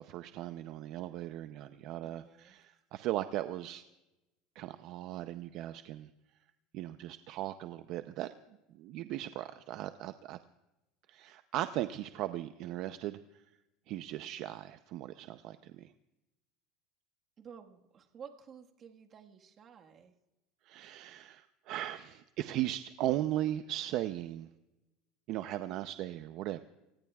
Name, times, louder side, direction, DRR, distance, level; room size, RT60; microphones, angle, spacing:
voice 1, 0.0-3.8 4.6-6.1 6.7-8.3 8.7-10.4 11.1-13.2 13.9-15.9 20.7-24.5 25.3-26.6, right 14 dB, 50° right, 10 dB, 0.6 m, -37 dB
voice 2, 2.0-2.6 17.4-20.1, right 7 dB, 30° right, 3 dB, 1.5 m, -52 dB
28.0 x 18.0 x 2.4 m, 0.98 s
cardioid pair, 155°, 0 cm